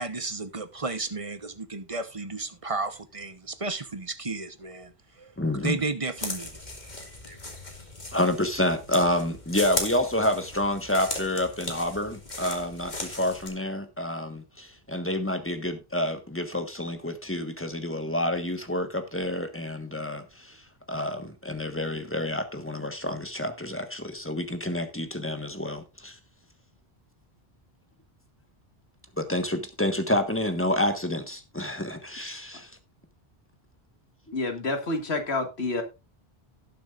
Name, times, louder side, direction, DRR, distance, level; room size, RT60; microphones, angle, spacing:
voice 1, 0.0-4.9 5.2-5.3 5.6-6.5 7.3-7.4, right 3 dB, 35° right, 1.1 m, -33 dB
voice 2, 5.4-5.8 8.1-26.2 29.2-32.7 34.3-34.4, left 1 dB, 10° left, 1.4 m, -29 dB
sound 1, 6.2-13.5, left 2 dB, 45° left, 2.5 m, -37 dB
voice 3, 34.3-35.8, left 2 dB, 90° left, 2.1 m, -28 dB
18.0 x 7.5 x 2.5 m
omnidirectional pair, 1.0 m